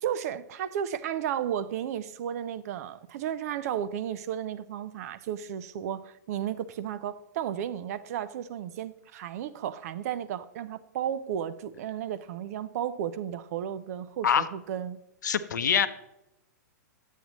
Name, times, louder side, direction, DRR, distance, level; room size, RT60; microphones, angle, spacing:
voice 1, 0.0-15.0, right 10 dB, 55° right, 0.6 m, -33 dB
voice 2, 15.2-15.9, left 8 dB, 75° left, 0.7 m, -24 dB
9.2 x 8.3 x 3.0 m
hypercardioid pair, 115°, 10 cm